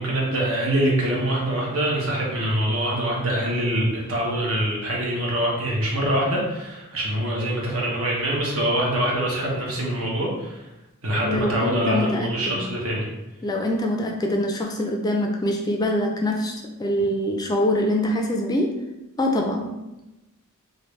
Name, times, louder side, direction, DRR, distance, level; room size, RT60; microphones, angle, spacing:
voice 1, 0.0-10.7 11.0-13.1, right 1 dB, 70° right, -3 dB, 1.0 m, -24 dB
voice 2, 11.2-12.7 13.4-16.5 16.8-18.7 19.2-19.7, left 1 dB, 20° left, 1 dB, 0.3 m, -24 dB
3.1 x 2.5 x 3.1 m, 0.99 s
head